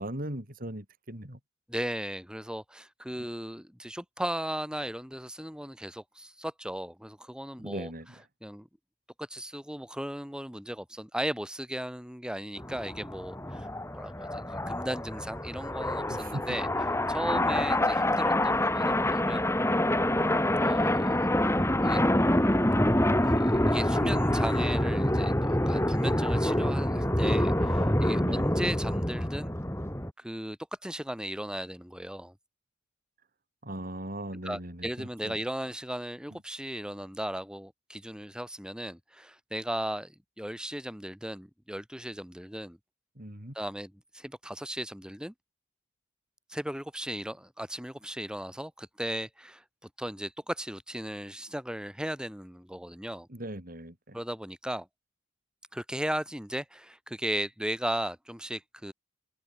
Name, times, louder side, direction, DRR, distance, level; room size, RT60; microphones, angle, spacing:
voice 1, 0.0-1.4 7.6-8.2 16.1-16.6 17.3-17.6 24.0-24.2 28.2-28.5 33.6-35.4 43.1-43.6 53.3-54.2, right 1 dB, 45° right, 6.3 m, -39 dB
voice 2, 1.7-7.9 8.4-8.7 9.2-16.7 17.1-19.5 20.6-22.0 23.2-29.5 30.2-32.3 34.4-42.8 43.5-45.3 46.5-49.6 50.0-53.3 54.1-54.9 55.7-58.9, equal, 5° right, 6.1 m, -36 dB
sound 1, 12.6-30.1, left 1 dB, 15° left, 4.6 m, -26 dB
head